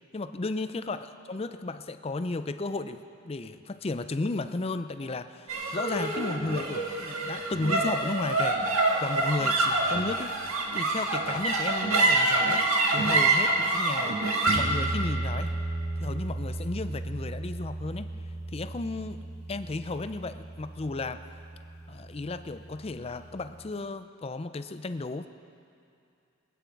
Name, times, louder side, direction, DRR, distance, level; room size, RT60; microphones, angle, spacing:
voice 1, 0.1-8.6 9.0-10.4 10.7-12.6 12.9-15.5 16.0-18.1 18.5-19.2 19.5-21.2 21.9-25.3, left 3 dB, 30° left, 10 dB, 0.4 m, -34 dB
sound 1, 5.5-22.0, right 2 dB, 80° right, 1.8 m, -28 dB
22.5 x 9.3 x 4.6 m, 2.6 s
head